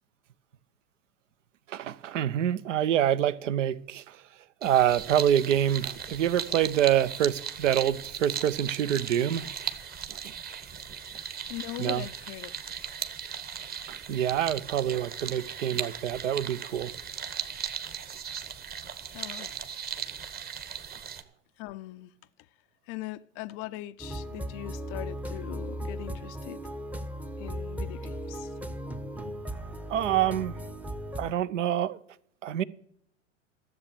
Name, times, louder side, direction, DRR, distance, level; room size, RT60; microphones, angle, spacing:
voice 1, 1.7-4.2 4.6-9.5 10.1-10.3 11.8-12.0 13.9-16.9 29.9-30.6 31.2-32.0 32.4-32.6, right 10 dB, 70° right, 0.8 m, -26 dB
sound 1, 4.6-21.2, right 7 dB, 25° right, 1.1 m, -37 dB
voice 2, 11.5-13.0 19.1-19.6 21.6-22.1 22.9-26.6 27.4-28.5, left 17 dB, 35° left, 0.4 m, -41 dB
sound 2, 24.0-31.3, equal, 5° right, 0.7 m, -37 dB
13.5 x 7.5 x 6.6 m
hypercardioid pair, 95°, 38 cm